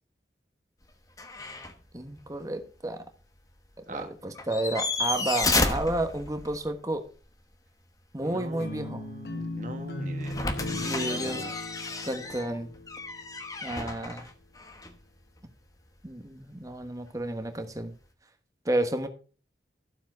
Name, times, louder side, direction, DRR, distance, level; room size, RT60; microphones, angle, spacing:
sound 1, 1.2-1.8 2.2-2.3 4.3-6.7 10.2-15.0 17.1-17.2, left 3 dB, 20° left, 1.1 m, -31 dB
voice 1, 1.9-3.0 3.8-7.0 8.1-9.0 10.9-11.4 12.0-12.7 13.6-14.3 16.0-17.9 18.6-19.1, right 1 dB, 20° right, 7 dB, 1.3 m, -31 dB
voice 2, 8.2-11.5, right 1 dB, 45° right, 6 dB, 1.6 m, -41 dB
sound 2, 8.6-13.7, left 2 dB, 65° left, 0.8 m, -38 dB
12.5 x 7.3 x 4.5 m, 0.38 s
head